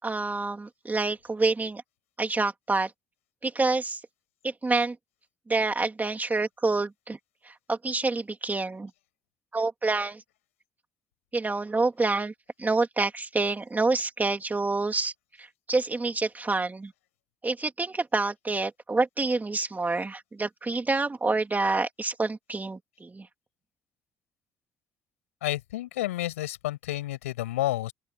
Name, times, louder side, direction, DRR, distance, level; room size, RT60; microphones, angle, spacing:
voice 1, 0.0-1.8 2.2-2.9 3.4-4.0 4.4-4.9 5.5-7.2 7.4-8.9 9.5-10.2 11.3-12.3 12.6-15.1 15.4-16.9 17.4-23.3, right 3 dB, 25° right, 3.3 m, -27 dB
voice 2, 25.4-27.9, left 15 dB, 90° left, 6.9 m, -30 dB
open air
hypercardioid pair, 55°, 7 cm